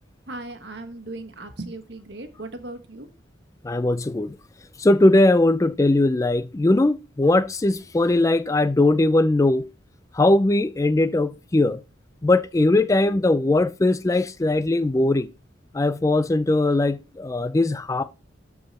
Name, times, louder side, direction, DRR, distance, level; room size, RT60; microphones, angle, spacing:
voice 1, 0.3-3.1, right 2 dB, 65° right, 1.4 m, -37 dB
voice 2, 3.6-4.3 4.8-9.6 10.2-11.8 12.2-15.3 15.7-18.0, left 2 dB, 15° left, 0.3 m, -20 dB
12.5 x 4.8 x 4.2 m
head